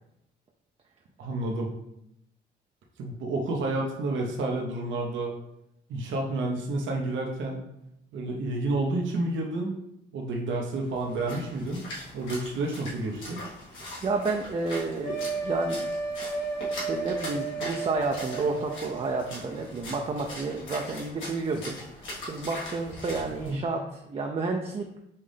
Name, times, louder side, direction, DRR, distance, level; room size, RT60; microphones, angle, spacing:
voice 1, 1.2-1.7 3.0-5.3 5.9-7.6 8.1-9.7 10.1-11.8 12.1-13.4 23.5-23.6, right 2 dB, 75° right, 0 dB, 0.8 m, -30 dB
Splash splatter, 10.8-23.6, left 1 dB, 80° left, 1.7 m, -41 dB
voice 2, 14.0-15.9 16.7-21.8 22.2-24.9, right 3 dB, 30° right, 2 dB, 0.5 m, -30 dB
sound 1, 15.0-19.4, right 4 dB, 60° left, 1.2 m, -33 dB
5.5 x 2.6 x 3.4 m, 0.81 s
cardioid pair, 90°, 20 cm